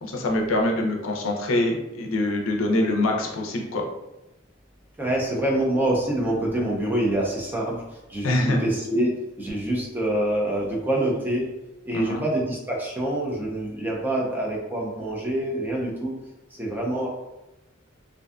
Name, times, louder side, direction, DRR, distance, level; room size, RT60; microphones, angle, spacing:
voice 1, 0.0-3.8 8.2-8.6 11.9-12.2, left 1 dB, 75° left, 1 dB, 0.5 m, -24 dB
voice 2, 5.0-9.1 9.4-11.4 11.9-16.1 16.6-17.1, right 1 dB, 10° right, -3 dB, 0.4 m, -26 dB
2.5 x 2.2 x 2.4 m, 0.97 s
head